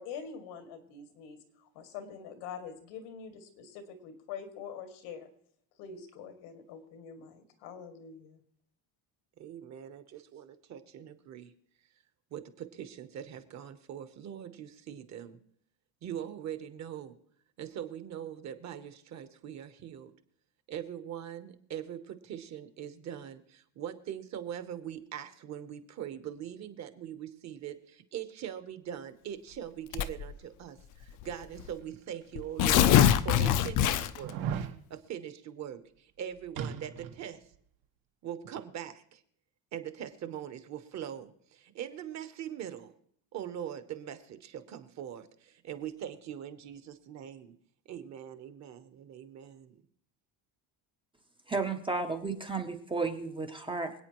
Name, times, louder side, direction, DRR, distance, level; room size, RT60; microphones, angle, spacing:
voice 1, 0.0-5.3 5.8-8.4, left 6 dB, 90° left, 5 dB, 2.3 m, -45 dB
voice 2, 9.4-11.5 12.3-15.4 16.0-17.2 17.6-20.1 20.7-34.5 34.9-37.4 38.2-39.2 39.7-42.9 43.3-47.5 47.9-49.8, right 10 dB, 35° right, 10 dB, 0.9 m, -42 dB
Tearing, 29.9-30.3 31.2-31.3 31.6-31.7 32.4-34.3, left 10 dB, 45° left, 0.5 m, -23 dB
sound 1, 32.2-32.3 33.0-33.1 34.2-34.8 36.6-37.2 37.5-37.6, right 8 dB, 85° right, 1.5 m, -36 dB
voice 3, 51.5-53.9, right 4 dB, 10° right, 4 dB, 0.5 m, -33 dB
26.0 x 8.7 x 3.0 m, 0.63 s
cardioid pair, 175°, 46 cm